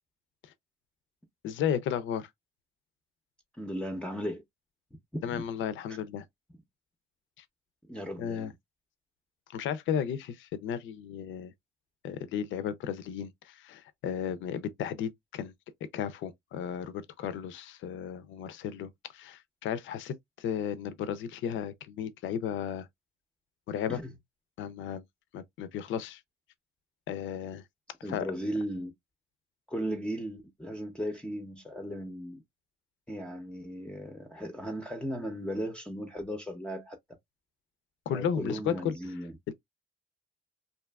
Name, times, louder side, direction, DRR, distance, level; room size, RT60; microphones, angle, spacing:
voice 1, 1.4-2.3 5.2-6.2 7.4-7.5 8.2-8.5 9.5-11.5 12.0-15.5 15.9-22.9 23.7-24.0 24.6-25.0 25.3-26.2 27.1-27.6 28.1-28.3 38.1-38.9 39.5-39.6, left 8 dB, 75° left, 0.4 m, -34 dB
voice 2, 3.6-4.4 5.1-5.4 7.9-8.5 23.9-24.1 28.0-28.9 29.7-32.4 33.1-37.0 38.1-39.4, equal, 5° left, 0.5 m, -36 dB
2.6 x 2.4 x 2.2 m
cardioid pair, 90°, 20 cm